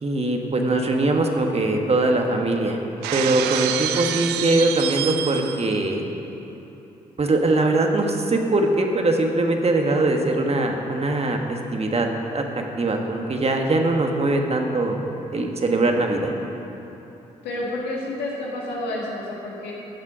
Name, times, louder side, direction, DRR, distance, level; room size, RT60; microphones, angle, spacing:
voice 1, 0.0-2.8 3.1-6.0 7.2-12.4 12.8-15.0 15.3-16.3, right 2 dB, 40° right, 3 dB, 1.4 m, -22 dB
Shatter, 3.0-5.8, right 11 dB, 80° right, 0.4 m, -27 dB
voice 2, 17.4-19.7, left 1 dB, 80° left, -3 dB, 1.8 m, -29 dB
13.0 x 7.3 x 5.0 m, 2.9 s
hypercardioid pair, 45°, 17 cm